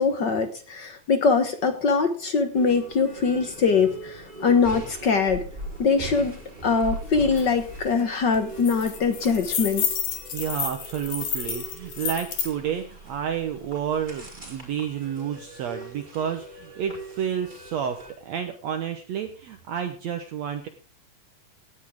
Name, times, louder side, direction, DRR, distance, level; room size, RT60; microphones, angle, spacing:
voice 1, 0.0-5.4 5.8-6.4 6.6-9.8, left 5 dB, 65° left, 8 dB, 1.1 m, -22 dB
sound 1, 2.5-18.1, right 1 dB, 15° right, 4.0 m, -41 dB
sound 2, 7.4-7.5 7.8-8.0 8.3-12.5, left 7 dB, 80° left, 4.1 m, -30 dB
voice 2, 10.3-20.7, right 8 dB, 65° right, 7 dB, 2.0 m, -30 dB
17.5 x 10.0 x 3.7 m, 0.41 s
omnidirectional pair, 3.8 m